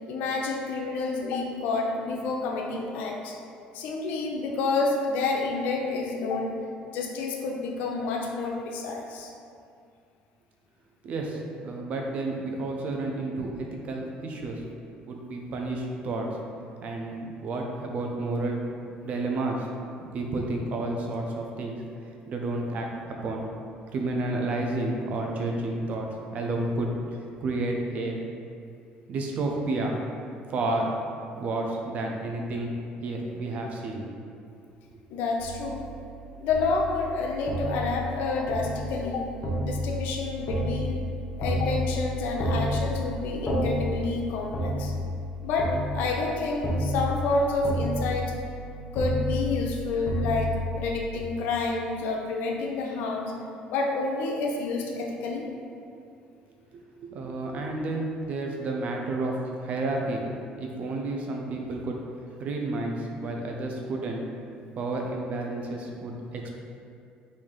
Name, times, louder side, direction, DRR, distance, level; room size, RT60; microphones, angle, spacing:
voice 1, 0.1-3.4 3.7-6.6 6.9-9.3 35.1-35.9 36.4-39.3 39.6-41.0 41.4-44.9 45.4-48.3 48.9-53.4 53.7-55.5, left 3 dB, 75° left, 1 dB, 0.5 m, -29 dB
voice 2, 11.0-11.4 11.6-14.6 15.1-16.3 16.8-18.6 19.0-19.7 20.1-21.8 22.3-23.5 23.9-26.9 27.4-28.2 29.1-30.0 30.5-30.9 31.4-32.7 33.0-34.0 56.7-59.3 59.6-60.3 60.6-62.0 62.4-64.2 64.8-66.5, right 2 dB, 50° right, 1 dB, 0.6 m, -31 dB
sound 1, 35.4-51.2, equal, 45° left, 0.8 m, -31 dB
3.2 x 2.7 x 3.8 m, 2.5 s
cardioid pair, 105°, 3 cm